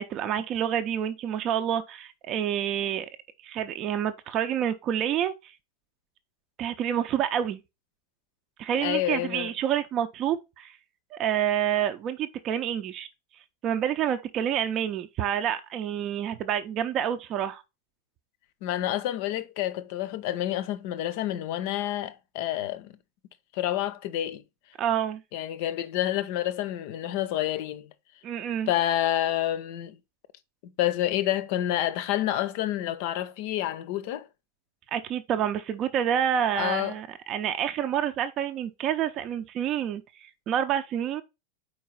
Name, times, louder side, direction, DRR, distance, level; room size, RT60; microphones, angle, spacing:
voice 1, 0.0-3.1 3.4-5.3 6.6-7.6 8.6-10.8 11.1-13.1 13.6-17.6 24.8-25.2 28.2-28.7 34.9-41.2, right 9 dB, 35° right, 0.6 m, -28 dB
voice 2, 8.8-9.5 18.6-22.9 23.5-24.4 25.3-27.9 28.7-30.0 30.6-34.3 36.6-37.0, left 13 dB, 50° left, 0.6 m, -28 dB
4.6 x 4.5 x 5.7 m
figure-of-eight pair, 90°, 0 cm